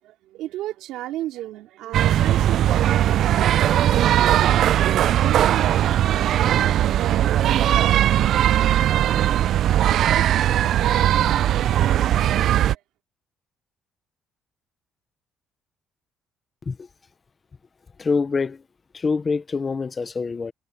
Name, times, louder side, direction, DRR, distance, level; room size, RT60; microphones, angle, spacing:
voice 1, 0.0-4.5 4.9-12.0 12.7-12.8, right 14 dB, 80° right, 3.6 m, -35 dB
sound 1, 1.9-12.8, right 11 dB, 55° right, 0.4 m, -19 dB
voice 2, 18.0-18.6 18.9-20.5, left 4 dB, 20° left, 0.8 m, -25 dB
cardioid pair, 155°, 0 cm